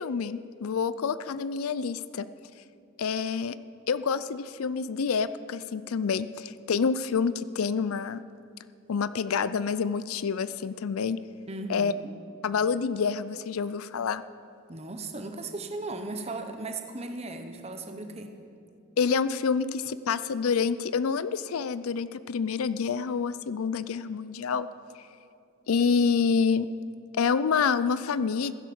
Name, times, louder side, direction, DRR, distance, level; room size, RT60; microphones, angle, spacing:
voice 1, 0.0-2.3 3.0-3.6 3.9-8.2 8.9-11.2 11.7-11.9 12.4-14.2 19.0-24.7 25.7-26.7 27.1-28.5, left 5 dB, 90° left, 15 dB, 0.5 m, -27 dB
voice 2, 11.5-12.1 14.7-18.3, right 2 dB, 30° right, 6 dB, 1.1 m, -37 dB
15.5 x 11.0 x 7.1 m, 2.5 s
head